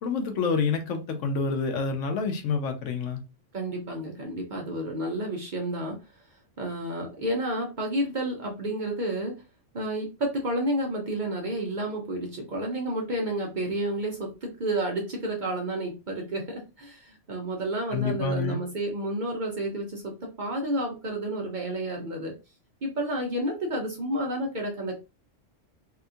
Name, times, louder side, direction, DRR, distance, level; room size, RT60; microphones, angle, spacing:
voice 1, 0.0-3.2 17.9-18.6, left 5 dB, 80° left, 1.0 m, -28 dB
voice 2, 3.5-6.0 6.6-9.4 9.7-22.3 22.8-25.0, right 1 dB, 50° right, 0.6 m, -30 dB
2.8 x 2.3 x 2.6 m
omnidirectional pair, 1.3 m